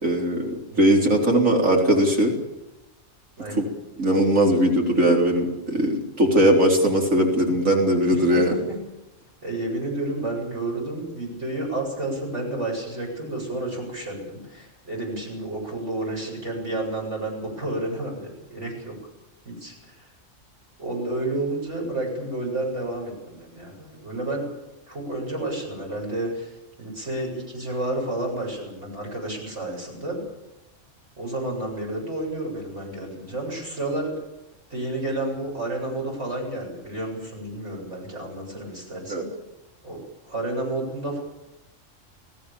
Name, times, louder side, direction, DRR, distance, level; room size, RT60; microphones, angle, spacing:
voice 1, 0.0-2.3 3.6-3.7 4.0-8.6 39.1-39.2, right 1 dB, 80° right, 0 dB, 4.2 m, -20 dB
voice 2, 3.4-3.7 8.1-8.8 9.4-18.9 19.4-20.1 20.8-24.5 24.9-26.5 26.8-30.2 31.2-34.1 34.7-39.3 39.8-41.2, right 2 dB, 60° right, -1 dB, 8.1 m, -31 dB
29.0 x 18.0 x 7.1 m, 0.95 s
omnidirectional pair, 1.3 m